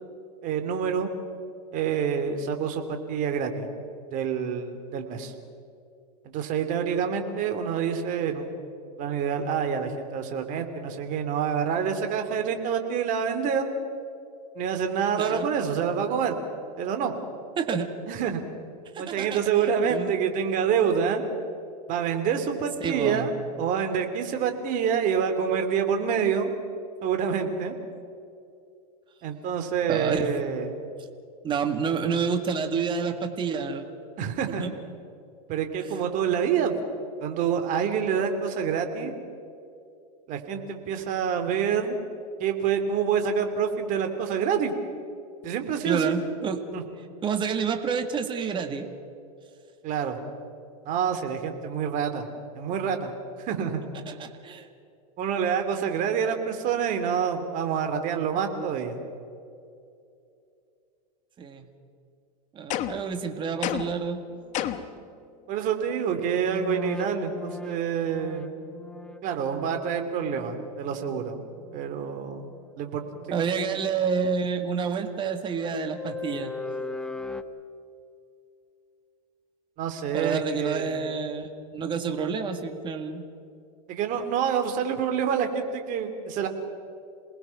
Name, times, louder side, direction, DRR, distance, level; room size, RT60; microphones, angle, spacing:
voice 1, 0.4-1.1 1.7-3.7 4.1-5.3 6.2-8.5 9.0-13.7 14.5-16.4 16.8-17.1 18.1-18.4 19.0-21.2 21.9-23.3 23.6-26.5 27.0-27.7 29.2-30.8 34.2-34.6 35.5-36.7 37.2-39.1 40.3-42.0 42.4-44.7 45.4-46.2 46.7-46.8 49.8-50.2 50.8-52.3 52.5-53.8 55.2-59.0 65.0-65.1 65.5-68.6 69.2-71.4 71.7-72.4 72.8-73.2 79.8-81.0 83.9-86.5, right 7 dB, 40° right, 6 dB, 2.9 m, -27 dB
voice 2, 17.6-17.9 18.9-19.4 19.9-20.1 22.8-23.3 29.9-30.4 31.4-33.9 34.6-34.7 45.8-46.6 47.2-49.0 54.1-54.7 61.4-61.7 62.5-64.2 73.3-76.5 80.1-83.3, right 6 dB, 25° right, 7 dB, 1.8 m, -29 dB
sound 1, 62.7-63.1 63.6-64.1 64.5-65.0, left 11 dB, 35° left, 1.2 m, -30 dB
sound 2, 64.5-64.6 66.4-72.0 72.3-72.7 73.1-73.3 75.8-77.4, left 4 dB, 5° left, 0.8 m, -39 dB
28.0 x 19.5 x 5.9 m, 2.6 s
supercardioid pair, 135°, 21 cm